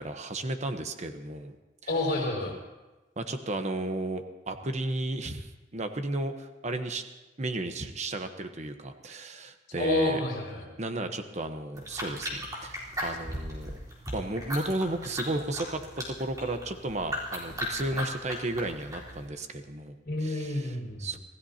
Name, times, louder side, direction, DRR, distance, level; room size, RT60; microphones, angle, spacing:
voice 1, 0.0-1.5 1.8-1.9 3.2-7.0 7.4-10.2 10.8-13.8 14.1-21.2, right 2 dB, 40° right, 7 dB, 1.0 m, -34 dB
voice 2, 1.9-2.5 9.8-10.6 20.0-21.0, left 2 dB, 55° left, -2 dB, 5.6 m, -28 dB
sound 1, 11.8-19.3, equal, 20° right, 4.0 m, -37 dB
26.5 x 16.5 x 2.9 m, 1.1 s
head